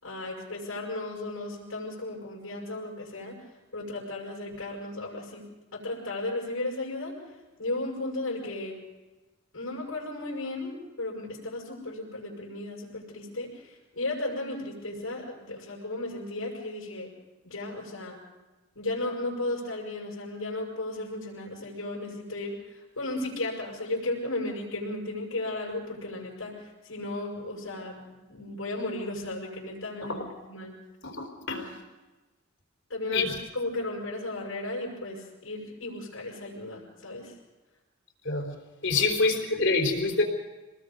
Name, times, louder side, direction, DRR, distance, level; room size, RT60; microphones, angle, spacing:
voice 1, 0.0-3.4 3.7-7.2 7.6-8.8 9.5-17.1 17.4-18.2 18.7-30.7 31.5-31.7 32.9-37.4 38.9-39.0, left 2 dB, 90° left, -4 dB, 6.5 m, -35 dB
voice 2, 31.0-31.6 33.1-33.3 38.2-38.5 38.8-40.2, left 3 dB, 65° left, 3 dB, 4.0 m, -26 dB
27.0 x 20.0 x 5.5 m, 1.1 s
head